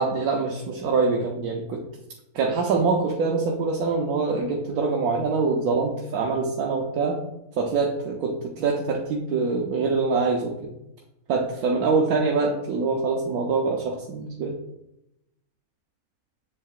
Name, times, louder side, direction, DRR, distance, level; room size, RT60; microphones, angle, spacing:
voice 1, 0.0-1.8 2.3-7.2 7.6-10.7 11.3-14.5, right 4 dB, 80° right, 0 dB, 1.2 m, -24 dB
7.3 x 7.2 x 2.4 m, 0.91 s
omnidirectional pair, 1.6 m